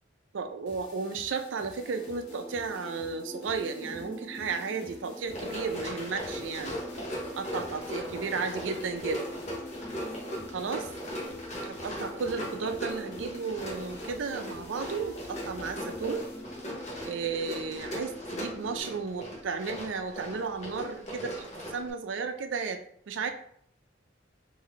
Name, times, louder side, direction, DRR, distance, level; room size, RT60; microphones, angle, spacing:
voice 1, 0.3-6.7 7.4-9.2 10.5-10.8 11.6-16.3 17.1-23.3, right 5 dB, 75° right, 7 dB, 0.4 m, -34 dB
sound 1, 0.7-17.3, left 1 dB, 65° left, 0.8 m, -53 dB
sound 2, 1.8-18.8, left 1 dB, 5° left, 0.4 m, -44 dB
Run, 5.2-21.9, equal, 35° left, 1.1 m, -39 dB
3.1 x 2.7 x 3.8 m, 0.66 s
head